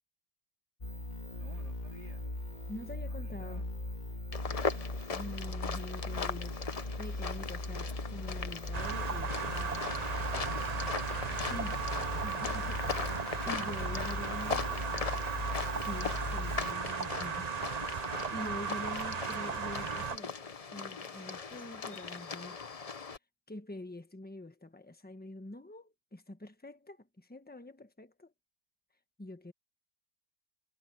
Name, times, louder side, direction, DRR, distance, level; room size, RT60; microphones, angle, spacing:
sound 1, 0.8-16.7, left 1 dB, 25° left, 2.3 m, -39 dB
voice 1, 1.3-2.3 3.1-3.7 4.5-4.9 11.2-12.9 14.0-15.1, right 2 dB, 70° right, 4.7 m, -56 dB
voice 2, 2.7-3.6 5.0-6.6 7.0-9.8 11.5-11.7 12.2-12.8 13.2-14.7 15.7-17.5 18.3-20.3 20.7-22.6 23.5-28.3 29.2-29.5, left 1 dB, 5° left, 1.2 m, -45 dB
sound 2, 4.3-23.2, left 5 dB, 45° left, 0.4 m, -40 dB
sound 3, 8.7-20.2, right 5 dB, 35° right, 0.7 m, -36 dB
omnidirectional pair, 1.8 m